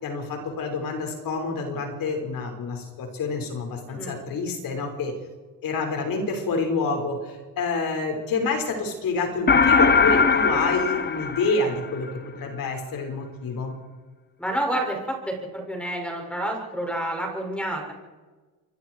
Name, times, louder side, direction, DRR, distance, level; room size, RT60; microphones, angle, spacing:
voice 1, 0.0-5.1 5.6-12.1 12.4-13.7, left 3 dB, 70° left, 3 dB, 5.9 m, -28 dB
sound 1, 9.5-12.1, left 4 dB, 30° left, 1.2 m, -20 dB
voice 2, 14.4-15.0 15.3-17.9, right 1 dB, 5° left, 1 dB, 6.9 m, -29 dB
27.5 x 24.0 x 4.9 m, 1.3 s
cardioid pair, 120°, 36 cm